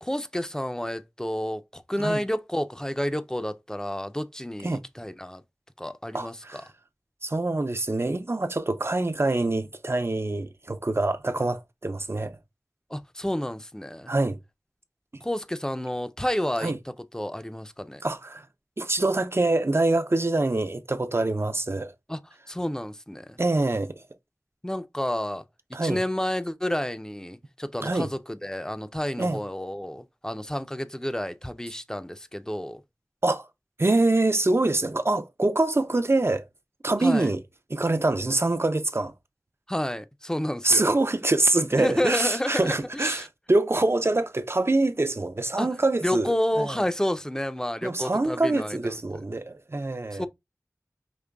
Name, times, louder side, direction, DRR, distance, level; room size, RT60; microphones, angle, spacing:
voice 1, 0.0-5.4 5.8-6.6 12.9-14.1 15.2-18.0 22.1-22.2 22.5-23.4 24.6-25.4 25.8-32.8 37.0-37.3 39.7-40.9 41.8-43.3 45.6-45.7 46.0-48.9 50.1-50.3, left 1 dB, 10° left, 0.5 m, -30 dB
voice 2, 6.1-6.6 7.2-12.4 14.1-14.4 16.6-16.8 18.0-18.5 18.8-21.9 23.4-24.0 25.7-26.0 27.8-28.1 29.2-29.4 33.2-33.5 33.8-36.5 36.8-37.4 37.7-39.1 40.6-46.8 47.8-50.3, right 2 dB, 45° right, 0.5 m, -25 dB
5.2 x 2.9 x 2.2 m
wide cardioid pair, 45°, 6 cm